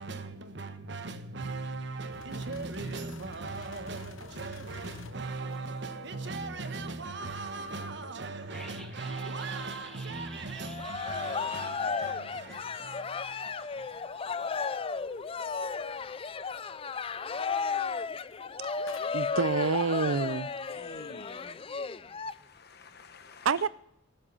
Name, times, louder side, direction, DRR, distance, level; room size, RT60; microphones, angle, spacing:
voice 1, 0.0-14.5, right 3 dB, 60° right, 1.2 m, -39 dB
sound 1, 2.1-6.9 11.0-12.4 13.5-16.1 18.2-18.5 18.9-19.3, left 5 dB, 80° left, 0.8 m, -51 dB
sound 2, 8.5-13.3 13.6-13.7, equal, 5° left, 1.6 m, -50 dB
Cheering, 10.6-22.3, left 5 dB, 30° left, 0.4 m, -34 dB
voice 2, 18.6-20.5 23.4-23.7, right 5 dB, 85° right, 0.6 m, -28 dB
voice 3, 20.7-21.7 22.3-23.7, left 4 dB, 50° left, 1.1 m, -51 dB
18.5 x 7.6 x 5.6 m
head